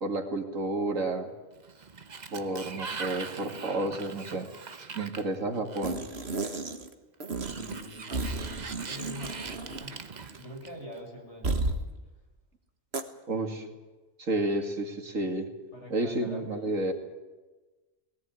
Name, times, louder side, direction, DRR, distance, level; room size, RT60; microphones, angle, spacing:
voice 1, 0.0-1.3 2.3-4.5 4.9-6.0 13.3-13.6 14.2-15.5 15.9-16.9, right 2 dB, 80° right, 4 dB, 2.9 m, -31 dB
Sliding door, 1.5-6.1 7.3-11.0, right 5 dB, 35° right, 1.0 m, -42 dB
sound 1, 5.8-6.9 7.2-10.0 10.2-10.4 11.4-11.8 12.9-13.0, right 3 dB, 55° right, 1.9 m, -33 dB
voice 2, 7.5-10.0 10.4-11.6 13.3-13.7 15.7-16.8, equal, 60° left, 0 dB, 6.9 m, -44 dB
19.5 x 18.0 x 9.5 m, 1.2 s
omnidirectional pair, 1.3 m